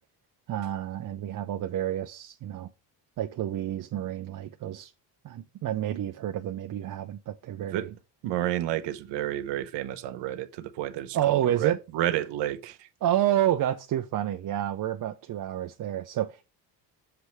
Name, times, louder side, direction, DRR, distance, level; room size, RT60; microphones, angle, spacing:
voice 1, 0.5-2.7 3.2-4.9 5.2-7.9 11.1-11.8 13.0-16.4, right 12 dB, 50° right, 0.5 m, -29 dB
voice 2, 8.2-12.9, right 13 dB, 80° right, 0.8 m, -31 dB
6.8 x 3.2 x 5.7 m
cardioid pair, 100°, 42 cm